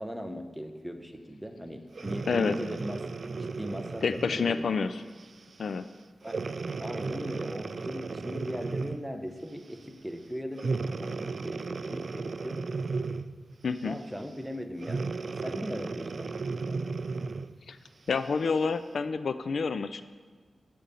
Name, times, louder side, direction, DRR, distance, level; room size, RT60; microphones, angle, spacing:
voice 1, 0.0-3.0 3.4-4.9 6.2-6.4 6.8-10.7 11.0-12.6 13.8-15.1 15.4-16.8, equal, ahead, 6 dB, 0.8 m, -39 dB
Breathing, 1.9-4.6 5.2-5.4 6.2-9.1 10.6-13.4 14.8-17.5 18.2-18.3, right 4 dB, 60° right, 0.3 m, -35 dB
voice 2, 4.0-4.9 5.6-5.8 13.6-14.0 17.7-17.8 18.1-20.0, left 5 dB, 75° left, 12 dB, 0.3 m, -28 dB
8.9 x 5.1 x 6.8 m, 1.5 s
wide cardioid pair, 75°, 0 cm